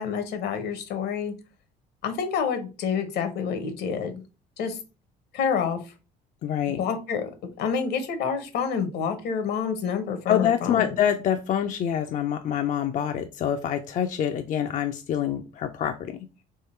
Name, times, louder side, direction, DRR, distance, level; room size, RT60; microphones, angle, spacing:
voice 1, 0.0-1.3 2.0-4.2 4.6-4.8 5.3-5.8 6.8-11.0, left 6 dB, 75° left, 8 dB, 1.1 m, -28 dB
voice 2, 6.4-6.8 10.3-16.3, left 9 dB, 50° left, 7 dB, 0.4 m, -26 dB
3.7 x 3.1 x 4.3 m, 0.32 s
cardioid pair, 110°, 17 cm